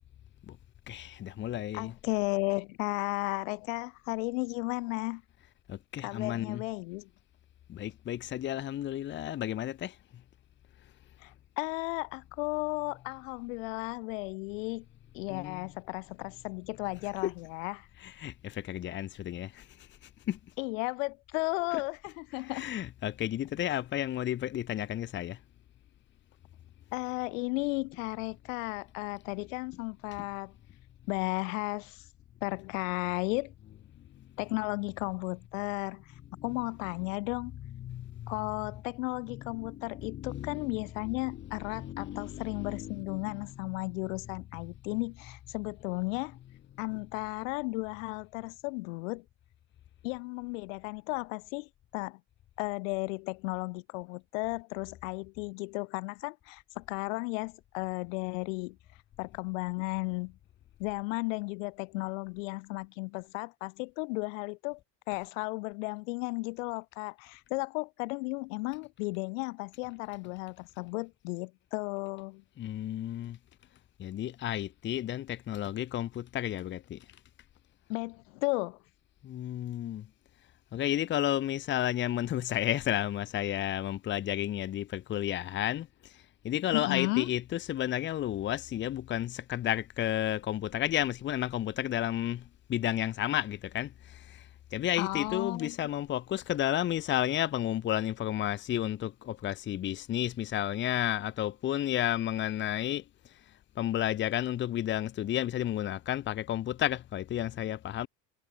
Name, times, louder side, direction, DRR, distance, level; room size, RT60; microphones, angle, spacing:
voice 1, 0.9-1.9 5.7-6.6 7.7-9.9 15.3-15.7 17.2-17.3 18.0-19.6 20.3-20.4 21.7-21.8 22.3-25.4 36.4-36.6 37.6-38.5 39.4-40.7 41.0-41.2 41.5-43.8 72.6-73.4 74.0-77.0 79.2-80.0 80.7-85.9 86.4-92.4 92.7-93.9 94.7-103.0 103.8-108.1, left 12 dB, 30° left, 1.3 m, -32 dB
voice 2, 1.7-5.2 6.0-7.1 11.2-14.9 15.1-17.9 20.6-22.7 23.7-23.8 26.9-30.5 31.1-32.1 32.4-33.5 34.4-36.0 36.4-37.6 38.3-46.4 46.8-49.2 50.0-52.2 52.6-58.8 59.2-60.4 60.8-64.8 65.1-72.4 77.9-78.8 86.7-87.3 95.0-95.8, left 29 dB, 80° left, 2.2 m, -34 dB
cardioid pair, 160°, 38 cm